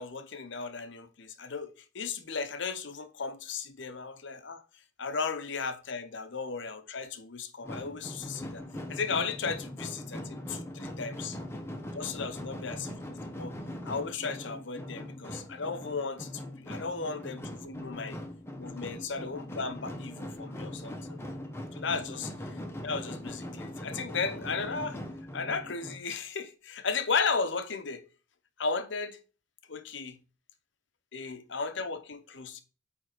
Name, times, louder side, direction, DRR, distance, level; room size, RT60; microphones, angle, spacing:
voice 1, 0.0-4.6 5.0-8.6 8.9-11.4 11.9-13.6 13.8-18.2 18.6-21.2 21.7-25.0 25.3-28.0 28.6-29.2 29.7-30.2 31.1-32.6, left 4 dB, 65° left, 0.8 m, -35 dB
sound 1, 7.6-26.0, left 1 dB, 15° left, 1.0 m, -41 dB
8.9 x 3.5 x 5.0 m
head